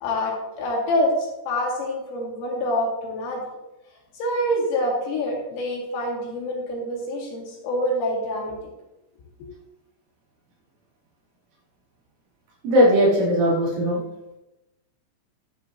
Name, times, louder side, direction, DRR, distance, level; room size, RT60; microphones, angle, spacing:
voice 1, 0.0-3.4 4.1-8.6, left 1 dB, 75° left, -3 dB, 4.5 m, -26 dB
voice 2, 12.6-14.0, equal, 70° right, -5 dB, 5.4 m, -18 dB
12.0 x 11.5 x 2.8 m, 0.94 s
omnidirectional pair, 6.0 m